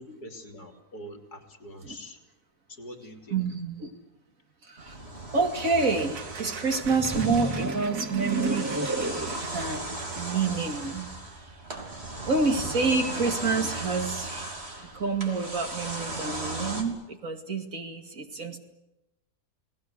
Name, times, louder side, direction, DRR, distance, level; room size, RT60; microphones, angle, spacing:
voice 1, 0.0-2.2 2.7-3.4, equal, 75° left, 5 dB, 3.6 m, -44 dB
voice 2, 3.3-4.0 4.6-5.0 5.3-8.8 9.5-9.9 10.1-11.1 11.4-11.6 12.2-18.6, right 4 dB, 55° right, 4 dB, 2.7 m, -28 dB
sound 1, 4.8-16.8, right 2 dB, 40° right, 3.6 m, -37 dB
sound 2, 5.4-11.0, right 7 dB, 75° right, 1.7 m, -44 dB
sound 3, 6.8-9.4, right 2 dB, 15° right, 0.6 m, -31 dB
30.0 x 19.0 x 7.9 m, 0.94 s
omnidirectional pair, 1.7 m